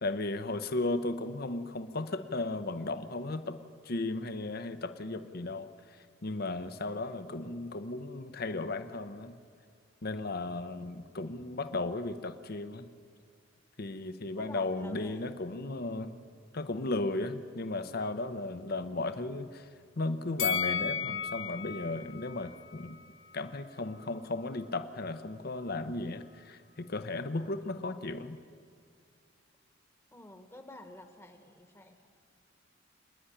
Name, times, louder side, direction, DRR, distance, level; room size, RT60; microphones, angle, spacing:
voice 1, 0.0-3.6 3.8-5.7 6.2-9.4 10.0-12.9 13.8-16.1 16.5-19.7 20.0-23.0 23.3-28.4, left 2 dB, 50° left, 10 dB, 0.8 m, -35 dB
voice 2, 14.4-15.2 30.1-32.1, left 1 dB, 15° left, 7 dB, 1.2 m, -50 dB
Bell, 20.4-23.6 23.9-24.1, left 7 dB, 85° left, 1.2 m, -35 dB
26.0 x 10.0 x 9.9 m, 2.3 s
head